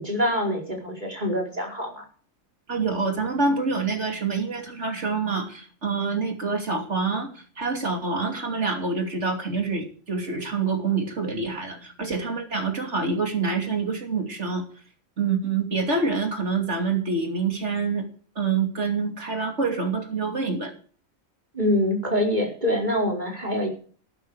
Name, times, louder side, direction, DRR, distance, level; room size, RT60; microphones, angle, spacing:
voice 1, 0.0-2.0 21.5-23.7, left 1 dB, 35° right, 0 dB, 5.0 m, -25 dB
voice 2, 2.7-14.6 15.2-18.1 18.3-20.7, right 4 dB, 65° right, 4 dB, 3.1 m, -26 dB
14.5 x 12.0 x 4.9 m, 0.43 s
omnidirectional pair, 1.3 m